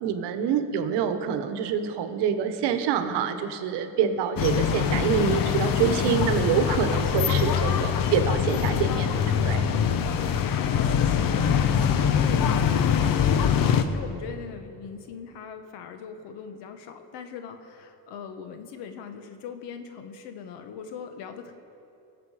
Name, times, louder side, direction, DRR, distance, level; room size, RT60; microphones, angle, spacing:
voice 1, 0.0-9.6, right 7 dB, 85° right, 9 dB, 1.1 m, -26 dB
sound 1, 4.4-13.8, left 8 dB, 55° left, 0.8 m, -23 dB
voice 2, 10.7-11.3 11.6-13.3 13.8-21.5, left 7 dB, 85° left, 7 dB, 1.2 m, -40 dB
22.5 x 7.5 x 4.9 m, 2.8 s
cardioid pair, 125°, 40 cm